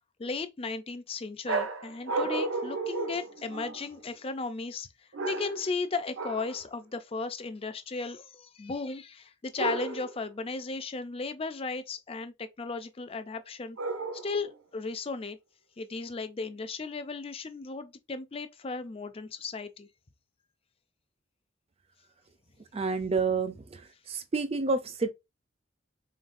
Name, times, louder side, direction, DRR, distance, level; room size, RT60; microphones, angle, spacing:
voice 1, 0.2-4.9 5.3-13.8 14.2-15.4 15.8-19.9, left 4 dB, 30° left, 0.4 m, -35 dB
sound 1, 1.5-4.0 5.1-5.8 6.2-6.6 9.6-10.2 13.8-14.5, right 3 dB, 85° right, 0.7 m, -33 dB
voice 2, 22.7-23.5 24.1-25.1, right 4 dB, 30° right, 0.5 m, -28 dB
3.9 x 3.9 x 2.6 m
head